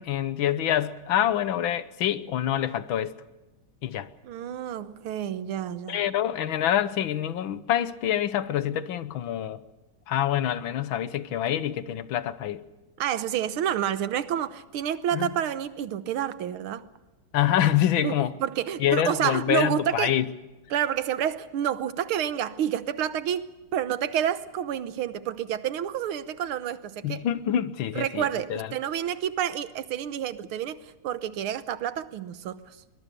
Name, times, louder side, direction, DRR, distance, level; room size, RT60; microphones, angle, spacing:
voice 1, 0.0-3.2 3.8-4.1 5.9-9.6 10.1-12.6 15.1-15.3 17.3-18.3 18.8-20.3 27.0-28.2 28.5-28.7, left 11 dB, 70° left, 1.7 m, -26 dB
voice 2, 4.2-6.0 13.0-16.8 18.0-20.1 20.7-27.3 27.9-32.6, right 10 dB, 85° right, 1.9 m, -29 dB
23.0 x 21.0 x 6.8 m
omnidirectional pair, 2.3 m